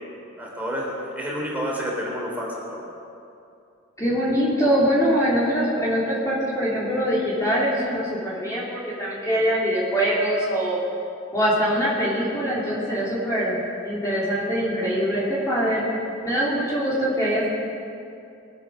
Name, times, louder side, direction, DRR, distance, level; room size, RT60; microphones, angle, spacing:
voice 1, 0.4-2.8, equal, 10° right, -4 dB, 3.6 m, -29 dB
voice 2, 4.0-10.8 11.3-15.8 16.2-17.5, equal, 15° left, -8 dB, 3.1 m, -23 dB
22.5 x 8.4 x 6.6 m, 2.6 s
head